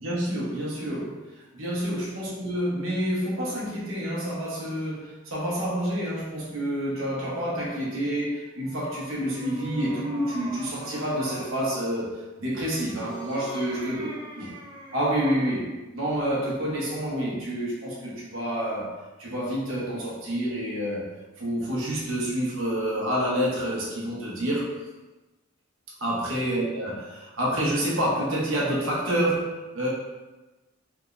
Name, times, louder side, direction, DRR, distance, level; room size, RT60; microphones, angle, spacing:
voice 1, 0.0-14.1 14.4-14.5 14.9-21.1 21.4-24.7 26.0-29.9, equal, 85° right, -5 dB, 1.0 m, -28 dB
sound 1, 8.6-11.6 12.5-15.7, right 1 dB, 25° right, 0.5 m, -42 dB
3.5 x 3.1 x 2.5 m, 1.1 s
head